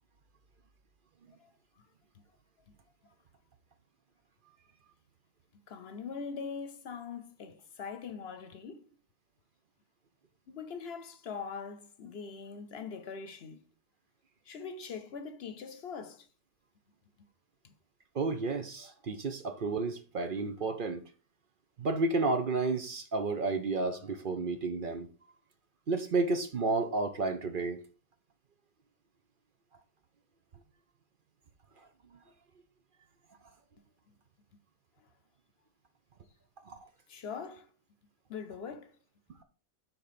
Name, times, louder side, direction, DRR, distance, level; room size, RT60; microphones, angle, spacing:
voice 1, 5.7-8.9 10.5-13.6 14.5-16.2 37.1-37.7 38.3-38.9, left 6 dB, 60° left, 0.9 m, -42 dB
voice 2, 18.1-21.0 21.8-25.1 25.9-27.8 36.7-36.8, right 3 dB, 50° right, 0.8 m, -31 dB
6.2 x 4.3 x 5.0 m
omnidirectional pair, 1.3 m